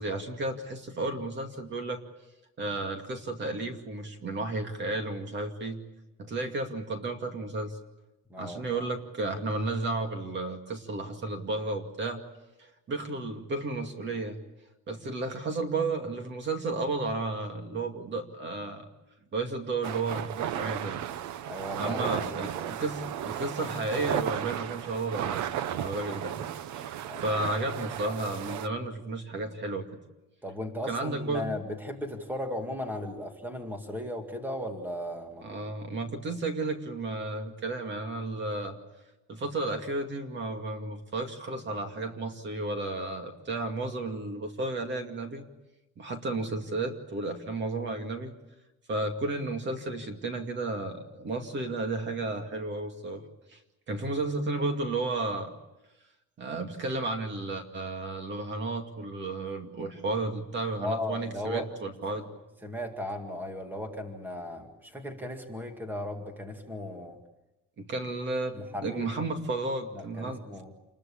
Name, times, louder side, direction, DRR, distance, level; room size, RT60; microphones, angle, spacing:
voice 1, 0.0-2.0 2.6-5.8 6.2-7.8 8.4-12.2 12.6-14.4 14.9-18.9 19.3-21.0 21.8-26.5 26.8-29.9 30.9-31.4 35.4-38.8 39.3-45.4 46.0-48.3 48.9-53.3 53.5-53.6 53.9-55.5 56.4-62.3 67.8-70.4, right 2 dB, 35° right, 5 dB, 2.4 m, -33 dB
voice 2, 8.3-8.9 21.4-22.7 27.0-27.3 30.4-35.4 60.8-61.7 62.1-62.3 62.6-67.2 68.5-69.0 69.9-70.7, left 1 dB, 5° right, 4 dB, 2.1 m, -36 dB
sound 1, 19.8-28.7, right 11 dB, 70° right, 0.9 m, -34 dB
28.0 x 21.0 x 8.6 m, 1.0 s
cardioid pair, 170°, 30 cm